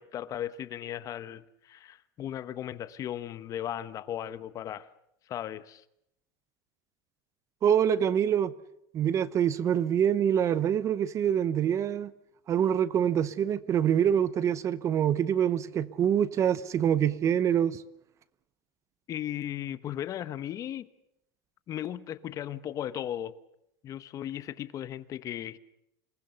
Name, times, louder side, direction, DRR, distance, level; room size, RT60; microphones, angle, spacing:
voice 1, 0.0-4.9 5.3-5.8 19.1-20.9 21.7-23.3 23.8-25.6, left 11 dB, 30° left, 1.0 m, -36 dB
voice 2, 7.6-8.5 8.9-12.1 12.5-17.8, right 9 dB, 30° right, 0.8 m, -25 dB
27.5 x 19.5 x 6.9 m
supercardioid pair, 155°, 11 cm